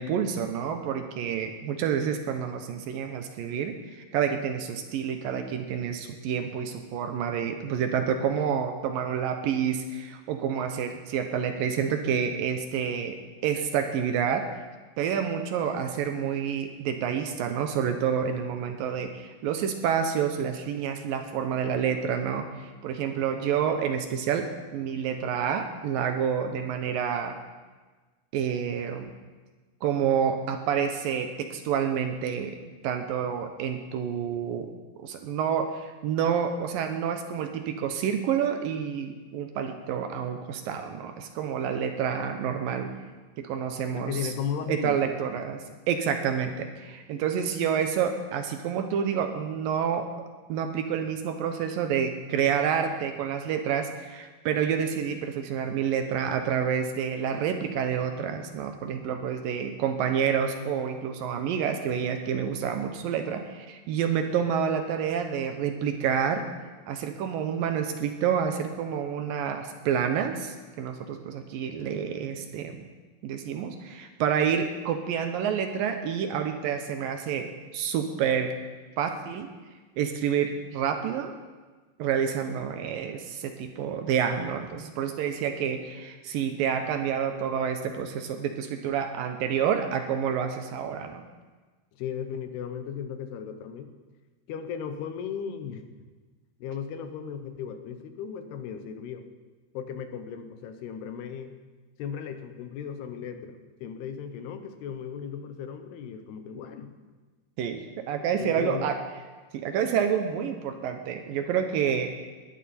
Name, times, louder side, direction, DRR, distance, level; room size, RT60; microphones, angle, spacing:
voice 1, 0.0-13.2 13.4-14.5 15.0-27.4 28.3-29.1 29.8-32.6 32.8-42.9 43.4-44.3 44.7-50.1 50.5-66.4 66.9-72.8 73.2-78.5 79.0-79.5 80.0-81.3 82.0-91.2 107.6-109.0 109.5-112.3, right 8 dB, 75° right, 6 dB, 2.4 m, -28 dB
voice 2, 43.9-45.0 91.9-93.9 94.5-95.9 96.6-99.3 99.7-101.5 102.0-106.9 108.2-108.9, left 7 dB, 85° left, 8 dB, 3.1 m, -36 dB
20.0 x 10.5 x 4.3 m, 1.3 s
omnidirectional pair, 4.5 m